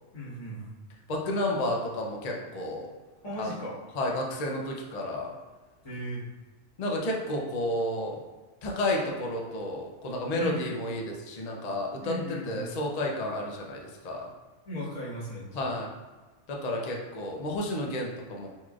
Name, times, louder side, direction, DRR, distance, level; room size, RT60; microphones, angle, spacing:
voice 1, 0.1-0.7 3.2-3.7 5.8-6.3 10.4-10.8 12.0-12.8 14.6-15.6, equal, 80° left, -9 dB, 1.7 m, -36 dB
voice 2, 1.1-2.9 3.4-5.3 6.8-8.2 8.6-12.1 12.5-14.3 15.5-15.9 16.5-18.5, left 1 dB, 50° left, -1 dB, 0.5 m, -31 dB
4.1 x 3.0 x 2.4 m, 1.3 s
omnidirectional pair, 1.3 m